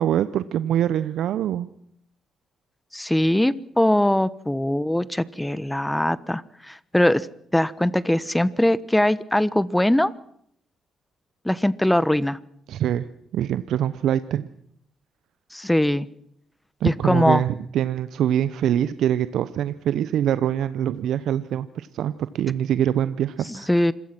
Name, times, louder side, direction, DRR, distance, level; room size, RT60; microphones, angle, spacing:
voice 1, 0.0-1.7 12.7-13.1 13.3-14.5 16.8-23.7, right 10 dB, 70° right, 14 dB, 0.9 m, -24 dB
voice 2, 2.9-7.3 7.5-10.1 11.4-12.4 15.5-16.1 16.8-17.4 23.5-23.9, left 1 dB, 10° left, 17 dB, 1.2 m, -21 dB
27.0 x 22.5 x 6.1 m, 0.68 s
hypercardioid pair, 50°, 0 cm